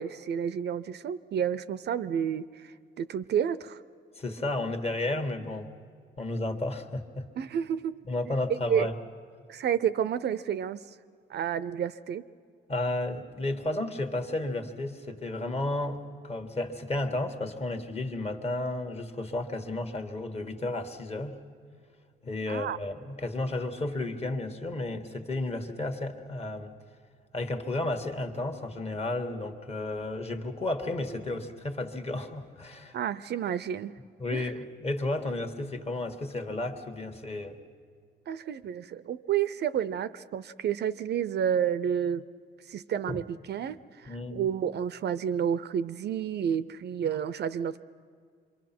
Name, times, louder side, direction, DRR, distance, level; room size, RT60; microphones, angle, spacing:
voice 1, 0.0-3.8 7.4-8.0 8.7-8.9 9.5-10.8 11.3-12.2 22.5-22.8 32.9-33.9 34.3-34.5 38.3-42.2 42.7-47.8, right 8 dB, 60° right, 15 dB, 0.5 m, -30 dB
voice 2, 4.2-5.7 6.2-7.3 8.1-8.9 12.7-21.4 22.2-26.7 27.3-33.0 34.2-37.6 43.1-43.2 44.1-44.5, left 2 dB, 30° left, 6 dB, 1.5 m, -32 dB
26.0 x 23.0 x 6.0 m, 2.1 s
cardioid pair, 90°, 20 cm